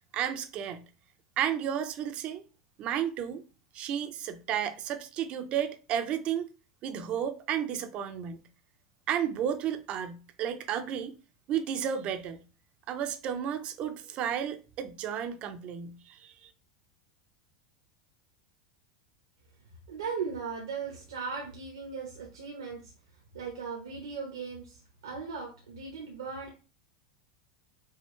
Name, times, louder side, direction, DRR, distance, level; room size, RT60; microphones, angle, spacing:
voice 1, 0.1-0.8 1.4-2.4 2.8-3.4 3.7-6.5 6.8-8.5 9.1-11.1 11.5-12.4 12.9-16.5, right 9 dB, 45° right, 0.7 m, -32 dB
voice 2, 19.9-22.9 23.3-26.5, right 5 dB, 80° right, 1.2 m, -38 dB
5.6 x 2.4 x 3.2 m
hypercardioid pair, 90°, 3 cm